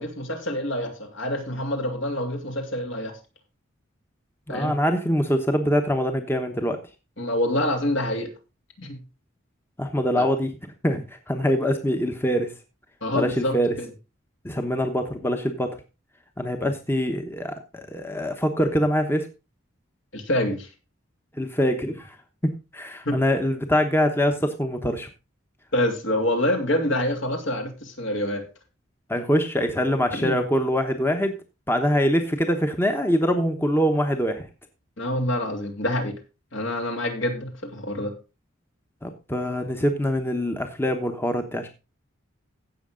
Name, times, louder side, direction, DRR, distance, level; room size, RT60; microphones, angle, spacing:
voice 1, 0.0-3.2 4.5-4.7 7.2-8.3 8.8-9.0 10.2-10.3 13.0-13.9 20.1-20.7 23.0-23.2 25.7-28.5 30.1-30.4 35.0-36.1 36.5-38.2, left 1 dB, 65° left, 4 dB, 2.9 m, -26 dB
voice 2, 4.5-6.8 9.8-10.5 10.8-12.5 13.1-13.7 14.4-15.8 16.4-19.3 21.4-22.2 22.4-25.1 29.1-31.4 31.7-34.5 39.0-41.7, equal, 10° left, 6 dB, 1.0 m, -24 dB
16.0 x 6.5 x 3.8 m, 0.28 s
head